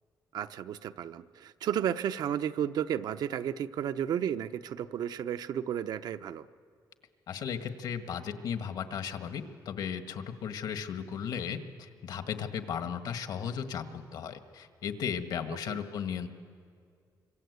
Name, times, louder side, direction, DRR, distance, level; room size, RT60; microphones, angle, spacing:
voice 1, 0.3-6.5 15.6-15.8, right 9 dB, 70° right, 11 dB, 0.7 m, -33 dB
voice 2, 7.3-16.3, left 7 dB, 75° left, 8 dB, 1.6 m, -36 dB
28.0 x 25.5 x 8.2 m, 2.3 s
cardioid pair, 135°, 7 cm